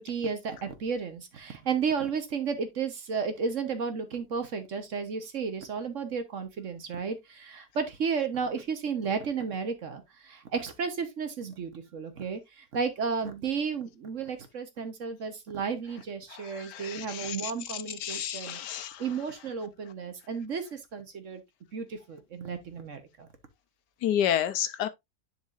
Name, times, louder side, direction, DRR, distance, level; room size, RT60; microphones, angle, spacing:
voice 1, 0.0-18.6 19.0-21.4 21.7-23.3, right 5 dB, 50° right, 1.3 m, -33 dB
voice 2, 16.7-17.5 18.0-19.0 24.0-24.9, left 10 dB, 80° left, 1.3 m, -30 dB
10.5 x 4.7 x 2.5 m
omnidirectional pair, 1.8 m